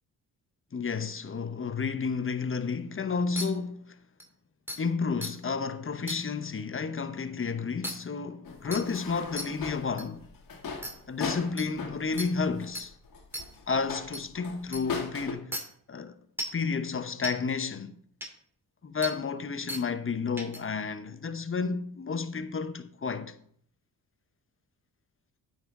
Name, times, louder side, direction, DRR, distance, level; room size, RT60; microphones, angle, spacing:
voice 1, 0.7-4.0 4.8-10.3 11.1-12.9 13.7-15.5 15.9-16.2 16.5-17.9 18.8-23.3, left 5 dB, 35° left, 1.0 m, -31 dB
sound 1, 3.4-3.5 4.2-4.3 4.7-4.8 5.2-5.3 6.1-6.2 7.8-7.9 8.7-8.8 9.4-9.5 10.0-10.1 10.8-10.9 11.6-11.7 12.2-12.3 12.7-12.9 13.3-13.4 14.1-14.2 14.7-14.8 15.5-15.6 16.4-16.6 17.2-17.3 18.2-18.3 19.0-19.1 19.7-19.8 20.4-20.6, equal, 5° right, 2.4 m, -35 dB
sound 2, 8.4-15.3, left 5 dB, 60° left, 2.0 m, -38 dB
9.0 x 7.3 x 3.8 m
cardioid pair, 60°, 37 cm